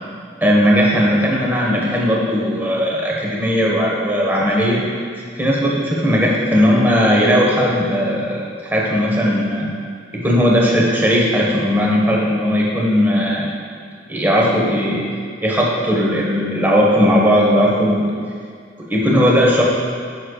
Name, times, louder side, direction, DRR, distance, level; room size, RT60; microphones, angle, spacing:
voice 1, 0.4-4.8 5.4-9.7 10.1-13.5 14.1-15.0 15.4-18.1 18.9-19.6, equal, 10° right, -3 dB, 1.1 m, -17 dB
14.0 x 6.4 x 2.4 m, 2.1 s
head